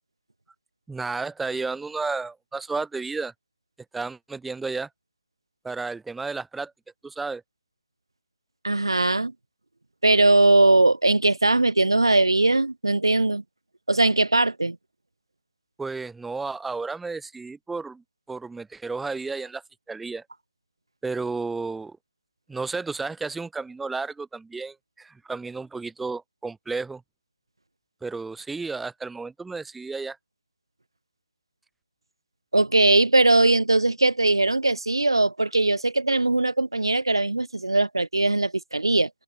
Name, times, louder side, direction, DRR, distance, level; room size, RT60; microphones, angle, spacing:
voice 1, 0.9-3.3 3.9-4.9 5.6-6.7 7.0-7.4 15.8-19.6 19.9-20.2 21.0-22.0 22.5-27.0 28.0-30.2, right 4 dB, 5° right, 0.9 m, -32 dB
voice 2, 8.6-9.3 10.0-13.4 13.9-14.8 32.5-39.1, right 2 dB, 70° right, 1.3 m, -20 dB
figure-of-eight pair, 150°, 3 cm